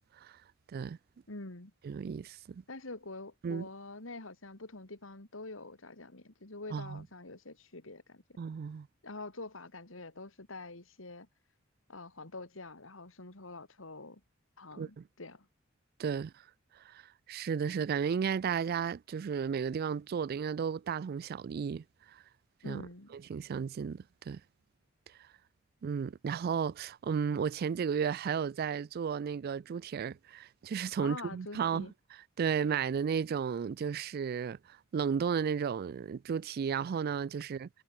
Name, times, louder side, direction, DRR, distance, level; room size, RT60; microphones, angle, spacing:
voice 1, 1.3-1.7 2.7-8.2 9.0-11.3 11.9-14.2 14.6-15.5 22.6-23.1 31.0-31.9, left 2 dB, 80° left, 2.8 m, -46 dB
voice 2, 1.8-2.6 3.4-3.7 6.7-7.1 8.4-8.9 14.8-15.0 16.0-16.3 16.7-17.0 17.3-22.2 22.6-22.8 23.1-24.4 25.8-37.7, right 6 dB, 50° right, 0.3 m, -34 dB
head